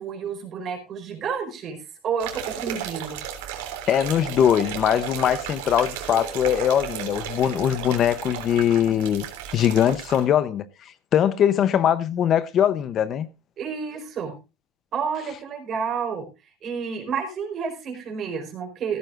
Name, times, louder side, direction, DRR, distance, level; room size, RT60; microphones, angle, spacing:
voice 1, 0.0-1.8 2.0-3.2 13.6-14.3 14.9-16.3 16.6-19.0, right 6 dB, 35° right, 4.6 m, -30 dB
sound 1, 2.2-10.3, right 10 dB, 85° right, 3.2 m, -34 dB
voice 2, 3.9-9.2 9.5-13.3, left 9 dB, 35° left, 0.8 m, -21 dB
15.5 x 14.0 x 2.5 m
cardioid pair, 145°, 0 cm